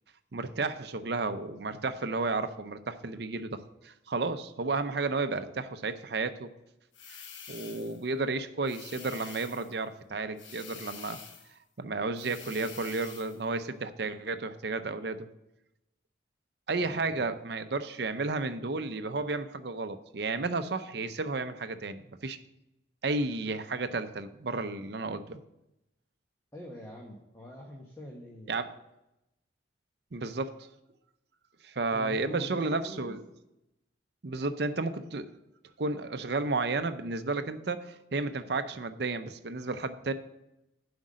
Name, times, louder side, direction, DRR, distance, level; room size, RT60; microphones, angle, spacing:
voice 1, 0.3-6.5 7.1-7.2 7.5-11.2 11.8-15.3 16.7-22.4 23.0-25.4 28.5-28.7 30.1-30.6 31.6-33.2 34.2-35.3 35.8-40.1, right 3 dB, 55° right, 10 dB, 0.6 m, -32 dB
sound 1, 6.9-8.0 8.7-9.8 10.4-11.6 12.2-13.4, left 6 dB, 75° left, 1.1 m, -47 dB
voice 2, 16.8-17.3 26.5-28.5 31.9-33.2, equal, 15° left, -1 dB, 1.0 m, -45 dB
7.7 x 5.2 x 7.5 m, 0.89 s
head